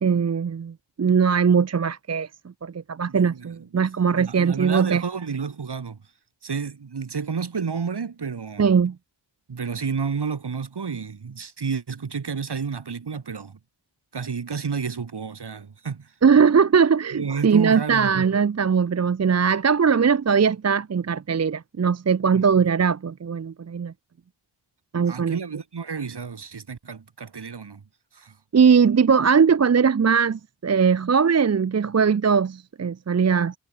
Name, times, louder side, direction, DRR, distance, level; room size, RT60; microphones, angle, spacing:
voice 1, 0.0-2.3 2.6-5.0 8.6-9.0 16.2-23.9 24.9-25.4 28.5-33.5, right 6 dB, 35° right, 0.5 m, -20 dB
voice 2, 3.1-3.7 4.1-6.0 6.4-8.7 9.5-13.6 14.1-16.1 17.1-18.3 22.3-22.4 25.0-27.8 28.1-28.4, right 5 dB, 60° right, 1.7 m, -31 dB
wide cardioid pair, 65°, 45 cm